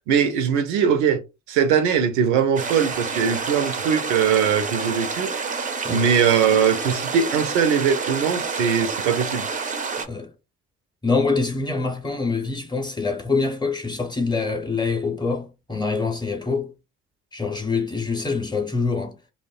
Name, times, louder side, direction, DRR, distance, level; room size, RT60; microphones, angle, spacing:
voice 1, 0.1-1.2 1.5-5.3 5.9-9.4, right 7 dB, 80° right, 0.5 m, -21 dB
sound 1, 2.6-10.1, right 5 dB, 25° right, 0.4 m, -28 dB
voice 2, 11.0-16.7 17.3-19.1, left 4 dB, 10° left, 0.7 m, -25 dB
2.6 x 2.0 x 2.3 m
hypercardioid pair, 45°, 36 cm